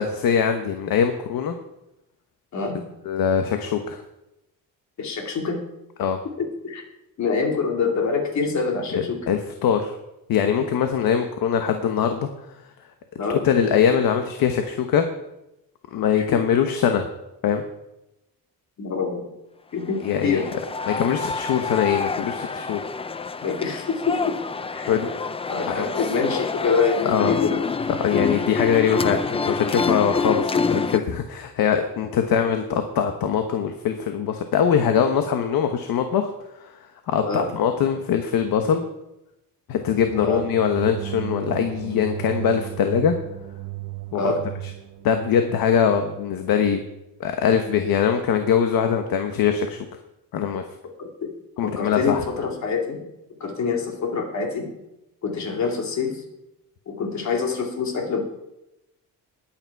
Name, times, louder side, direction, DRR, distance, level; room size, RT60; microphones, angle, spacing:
voice 1, 0.0-1.5 3.0-4.0 6.0-6.2 8.9-9.9 10.3-12.3 13.4-15.0 15.9-17.1 17.4-17.6 20.0-20.4 20.9-22.8 24.9-25.1 25.7-25.8 27.0-27.3 28.0-36.3 36.6-36.7 37.1-38.8 39.7-43.1 44.1-44.3 45.0-46.8 47.2-49.8 50.3-50.6 51.6-52.2, left 8 dB, 80° left, 6 dB, 1.3 m, -22 dB
voice 2, 2.5-2.9 5.0-5.6 6.4-6.8 7.2-9.2 13.2-13.4 16.1-16.2 18.8-19.3 19.7-20.5 23.4-24.4 24.7-24.9 25.5-27.7 37.2-37.5 40.2-40.4 44.1-44.4 51.2-51.3 51.6-53.0 53.4-54.7 55.2-56.2 56.9-58.2, left 4 dB, 50° left, 2 dB, 2.6 m, -25 dB
sound 1, 19.9-31.0, left 4 dB, 15° left, 0.5 m, -27 dB
sound 2, 39.8-47.0, right 15 dB, 75° right, 1.1 m, -35 dB
20.5 x 9.0 x 4.7 m, 0.91 s
cardioid pair, 150°, 35 cm